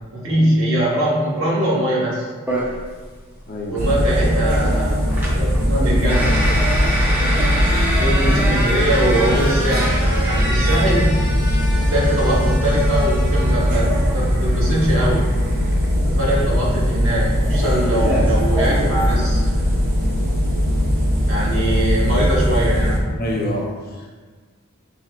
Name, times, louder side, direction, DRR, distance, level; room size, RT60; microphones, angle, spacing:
voice 1, 0.0-2.3 3.7-5.0 5.3-6.5 8.0-11.2 11.8-15.3 16.0-19.7 21.2-23.1, right 1 dB, 60° right, -6 dB, 1.4 m, -22 dB
sound 1, 2.5-18.7, right 1 dB, 10° right, 0.6 m, -28 dB
voice 2, 3.5-4.0 23.2-24.1, left 1 dB, 40° left, -1 dB, 0.6 m, -27 dB
sound 2, 3.8-23.0, equal, 45° right, 0.7 m, -19 dB
5.8 x 3.3 x 2.4 m, 1.5 s
head